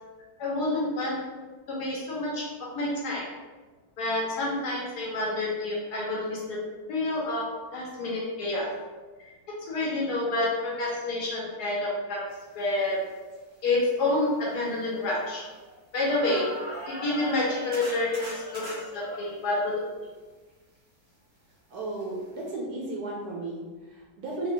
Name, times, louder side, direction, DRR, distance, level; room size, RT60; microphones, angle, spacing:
voice 1, 0.4-1.2 1.7-2.4 2.7-3.3 4.0-6.6 6.9-7.5 7.7-8.7 9.7-12.2 12.5-13.0 13.6-15.4 15.9-16.5 16.9-19.7, left 2 dB, 65° left, -4 dB, 1.3 m, -28 dB
sound 1, 13.3-13.4 14.0-15.8 16.1-19.2 22.0-22.1 22.4-22.5, equal, 45° right, 0.9 m, -40 dB
voice 2, 21.7-24.5, right 2 dB, 70° right, -3 dB, 1.0 m, -34 dB
4.3 x 2.3 x 2.8 m, 1.3 s
omnidirectional pair, 2.0 m